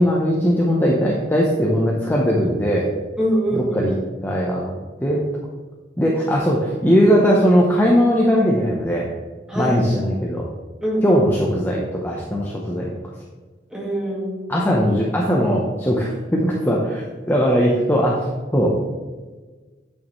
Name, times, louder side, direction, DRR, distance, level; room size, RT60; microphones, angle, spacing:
voice 1, 0.0-2.9 3.5-3.9 4.2-4.7 5.0-5.2 6.0-9.1 9.5-10.5 11.0-12.9 14.5-17.0 17.3-18.3 18.5-18.7, equal, 10° left, -3 dB, 0.8 m, -19 dB
voice 2, 3.2-4.0 9.5-9.8 10.8-11.2 13.7-14.4, right 1 dB, 5° right, -4 dB, 1.8 m, -24 dB
9.1 x 6.6 x 3.1 m, 1.3 s
head